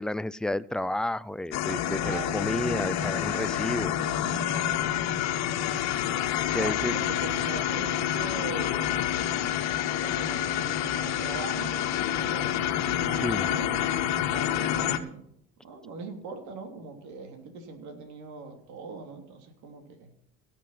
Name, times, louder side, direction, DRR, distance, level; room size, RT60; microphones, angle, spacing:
voice 1, 0.0-4.0 6.5-6.9 13.2-13.5, left 1 dB, 5° left, 16 dB, 0.4 m, -31 dB
sound 1, 1.5-15.0, left 10 dB, 65° left, 1.6 m, -28 dB
voice 2, 1.9-2.4 6.6-8.9 9.9-13.9 14.3-15.2 15.6-20.1, right 4 dB, 70° right, 4 dB, 3.3 m, -41 dB
17.5 x 7.6 x 5.8 m, 0.71 s
supercardioid pair, 105°, 29 cm